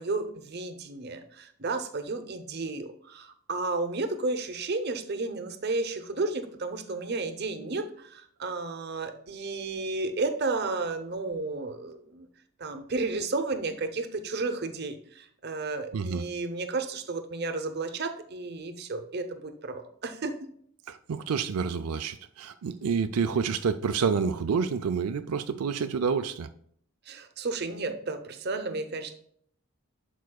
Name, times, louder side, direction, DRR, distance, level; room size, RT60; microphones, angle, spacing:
voice 1, 0.0-12.3 12.6-20.5 27.1-29.2, right 3 dB, 45° right, 7 dB, 0.7 m, -32 dB
voice 2, 15.9-16.3 20.9-26.5, right 5 dB, 90° right, 8 dB, 0.4 m, -28 dB
11.0 x 4.6 x 2.3 m, 0.63 s
head